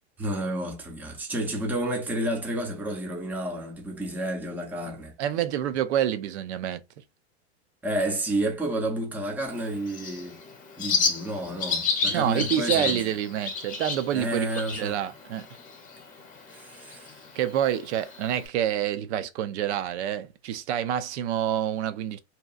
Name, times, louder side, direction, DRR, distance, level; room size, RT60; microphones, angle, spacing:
voice 1, 0.2-5.1 7.8-10.4 10.8-13.0 14.1-15.0 16.5-17.2, right 1 dB, 5° right, 0.5 m, -30 dB
voice 2, 5.2-6.8 12.1-14.5 14.7-15.5 17.3-22.2, right 11 dB, 75° right, 0.6 m, -27 dB
Bird, 9.5-18.5, left 5 dB, 25° left, 0.9 m, -32 dB
2.8 x 2.2 x 2.4 m
supercardioid pair, 140°, 34 cm